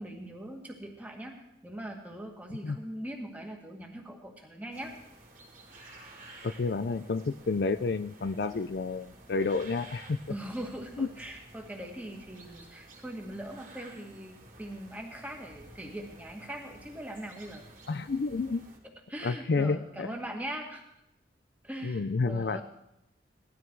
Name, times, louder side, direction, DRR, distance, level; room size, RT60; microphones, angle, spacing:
voice 1, 0.0-5.0 10.3-17.6 18.8-20.8 21.6-22.6, right 1 dB, 10° right, 1 dB, 1.9 m, -41 dB
sound 1, 4.7-18.8, right 2 dB, 45° right, 2.9 m, -52 dB
voice 2, 6.4-10.2 11.0-11.1 17.9-18.6 19.2-20.1 21.8-22.6, left 4 dB, 60° left, 12 dB, 0.4 m, -30 dB
18.0 x 12.5 x 4.7 m, 0.85 s
head